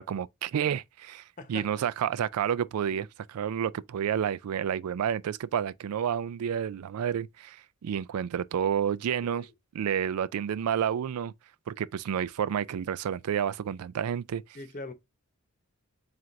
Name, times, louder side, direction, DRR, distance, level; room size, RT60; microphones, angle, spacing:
voice 1, 0.0-9.5 9.7-11.3 11.7-14.4, right 8 dB, 90° right, 0.3 m, -30 dB
voice 2, 1.4-1.7 2.9-3.1 9.3-9.5 14.5-14.9, left 2 dB, 40° left, 1.0 m, -42 dB
7.5 x 2.5 x 2.6 m
head